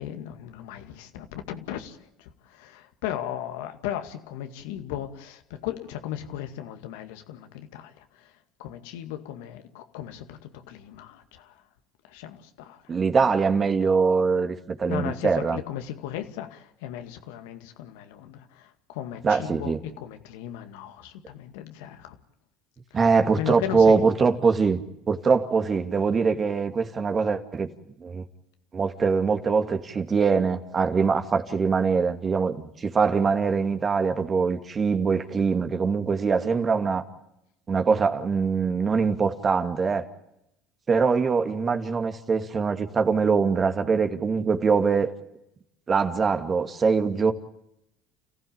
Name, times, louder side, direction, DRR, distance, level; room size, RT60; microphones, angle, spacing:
voice 1, 0.0-11.6 12.0-12.9 14.8-22.2 22.9-23.0 23.3-24.1, left 11 dB, 80° left, 2.1 m, -36 dB
voice 2, 12.9-15.6 19.2-19.8 22.9-24.8 25.1-27.7 28.0-28.2 28.7-37.0 37.7-40.1 40.9-45.1 45.9-47.3, right 5 dB, 35° right, 2.4 m, -23 dB
29.5 x 15.5 x 8.9 m
supercardioid pair, 85°, 0 cm